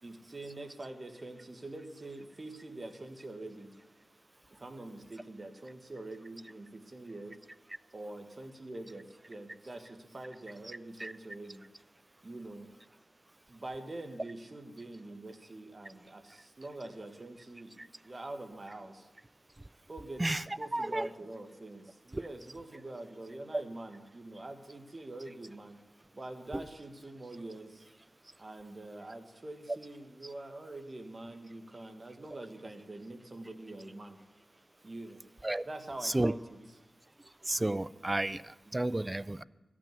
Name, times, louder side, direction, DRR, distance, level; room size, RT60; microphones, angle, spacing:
voice 1, 0.0-3.7 4.6-7.4 7.9-11.6 12.2-12.7 13.5-19.1 19.9-25.8 26.1-27.8 28.4-34.2 34.8-35.2 35.6-36.6, right 2 dB, 40° right, 7 dB, 1.6 m, -45 dB
voice 2, 20.7-21.1 22.1-22.2 23.5-23.6 26.5-26.6 35.4-35.6 36.0-36.3 37.5-38.4 38.7-39.4, right 1 dB, 25° right, 19 dB, 0.4 m, -31 dB
14.0 x 6.2 x 9.2 m, 1.1 s
cardioid pair, 50°, 0 cm